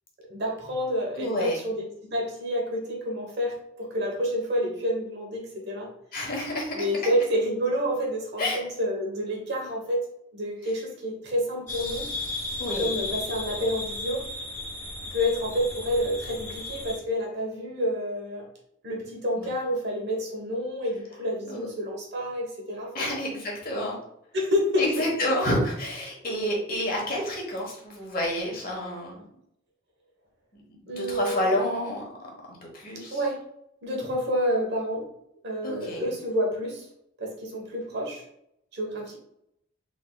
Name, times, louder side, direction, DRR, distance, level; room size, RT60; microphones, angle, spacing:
voice 1, 0.2-1.9 2.1-5.9 6.7-10.0 10.3-12.2 12.8-14.3 15.1-18.4 18.8-23.2 24.3-25.1 30.9-31.6 33.1-33.4 33.8-35.1 35.4-36.9 37.2-38.2 38.7-39.2, equal, 55° right, -1 dB, 1.1 m, -29 dB
voice 2, 1.2-1.6 6.1-6.7 8.4-8.6 12.6-12.9 21.5-21.7 22.9-24.0 24.8-29.1 31.0-32.1 32.7-33.2 35.6-36.0, left 1 dB, 45° left, -2 dB, 1.2 m, -29 dB
sound 1, 11.7-17.0, left 2 dB, 15° left, 1.2 m, -35 dB
3.8 x 3.7 x 2.3 m, 0.76 s
head